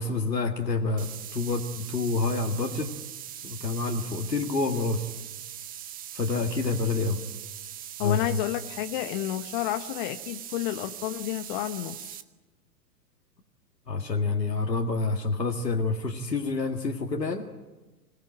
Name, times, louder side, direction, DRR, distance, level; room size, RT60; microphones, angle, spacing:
voice 1, 0.0-2.9 3.4-5.0 6.1-7.2 8.0-8.2 13.9-17.4, left 3 dB, 80° left, 2 dB, 2.0 m, -28 dB
sound 1, 1.0-12.2, right 11 dB, 15° right, 1.0 m, -41 dB
voice 2, 8.0-12.2, left 14 dB, 30° left, 10 dB, 1.0 m, -30 dB
26.0 x 18.0 x 9.0 m, 1.1 s
figure-of-eight pair, 110°, 49 cm